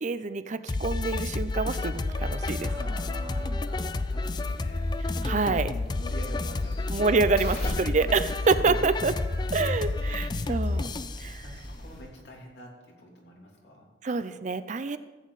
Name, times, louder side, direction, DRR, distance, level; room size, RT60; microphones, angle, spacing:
voice 1, 0.0-2.7 5.2-5.7 6.9-9.2 9.5-10.9 11.2-11.4 14.0-15.0, right 4 dB, 45° right, 12 dB, 0.5 m, -27 dB
Blast O' Reggae, 0.7-11.3, left 2 dB, 25° left, 0.4 m, -30 dB
sound 1, 1.9-4.5 7.1-7.2 8.8-9.4, equal, 25° right, 1.3 m, -45 dB
voice 2, 2.6-4.9 5.8-7.2 7.6-8.1 8.4-8.7 9.4-10.7 11.4-13.9, equal, 80° left, -2 dB, 3.0 m, -47 dB
sound 2, 4.5-12.0, equal, 60° left, 4.1 m, -40 dB
14.5 x 8.3 x 4.1 m, 1.3 s
head